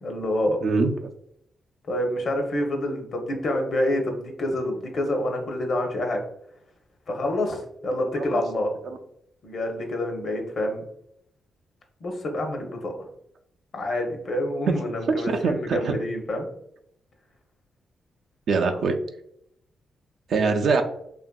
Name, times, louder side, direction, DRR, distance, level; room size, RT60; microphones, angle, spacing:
voice 1, 0.0-0.6 1.9-6.2 7.1-8.7 9.4-10.8 12.0-13.1 13.7-16.5, left 1 dB, 60° left, 2 dB, 0.7 m, -27 dB
voice 2, 15.2-15.9 18.5-19.0 20.3-20.8, right 4 dB, 70° right, 5 dB, 0.3 m, -23 dB
2.8 x 2.4 x 2.2 m, 0.72 s
cardioid pair, 70°, 0 cm